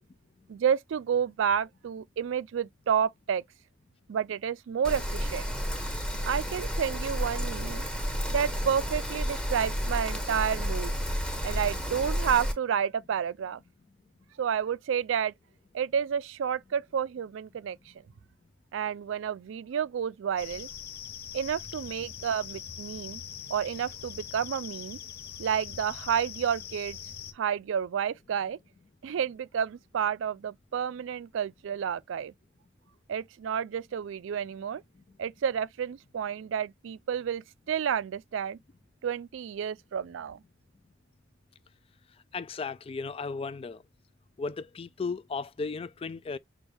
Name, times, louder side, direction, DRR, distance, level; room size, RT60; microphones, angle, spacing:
voice 1, 0.5-3.4 4.1-5.5 6.2-7.8 8.3-10.9 11.4-13.6 14.4-15.3 15.7-17.8 18.7-20.7 21.3-23.2 23.5-25.0 25.4-27.0 27.3-28.6 29.0-32.3 33.1-34.8 35.2-38.6 39.0-40.4, right 8 dB, 75° right, 0.3 m, -30 dB
Rain, 4.8-12.5, equal, 5° left, 1.4 m, -31 dB
sound 1, 20.4-27.3, left 8 dB, 50° left, 0.8 m, -42 dB
voice 2, 42.3-43.8 44.4-46.4, left 4 dB, 30° left, 0.3 m, -35 dB
6.2 x 2.2 x 3.3 m
head